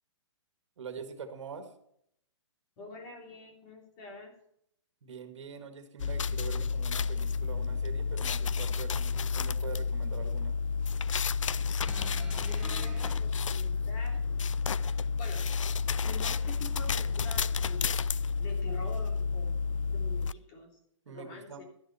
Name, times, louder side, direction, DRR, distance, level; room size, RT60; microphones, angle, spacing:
voice 1, 0.8-1.8 5.0-10.6 21.1-21.6, right 6 dB, 70° right, 7 dB, 2.0 m, -44 dB
voice 2, 2.8-4.3 12.1-14.2 15.2-15.5 16.0-19.6 19.9-20.8 21.1-21.6, left 3 dB, 30° left, 0 dB, 3.4 m, -46 dB
sound 1, 6.0-20.3, left 5 dB, 85° left, 0.5 m, -31 dB
sound 2, 11.8-13.1 14.1-14.2, right 2 dB, 5° right, 2.6 m, -46 dB
12.5 x 11.0 x 4.3 m, 0.72 s
hypercardioid pair, 155°, 16 cm